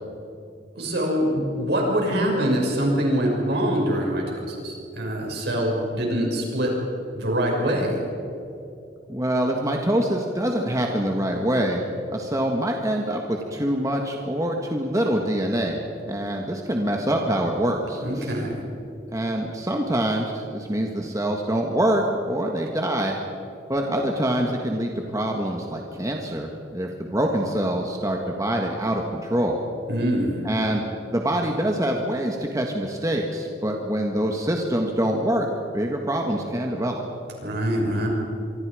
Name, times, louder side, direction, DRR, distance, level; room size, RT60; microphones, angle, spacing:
voice 1, 0.8-6.7 7.1-8.0 18.0-18.6 29.9-30.4 37.4-38.1, equal, 65° right, -1 dB, 6.4 m, -24 dB
voice 2, 9.1-11.8 12.1-18.3 19.1-23.2 23.7-29.6 30.4-35.5 35.7-37.0, right 1 dB, 20° right, 1 dB, 1.7 m, -25 dB
26.0 x 24.5 x 5.0 m, 2.7 s
head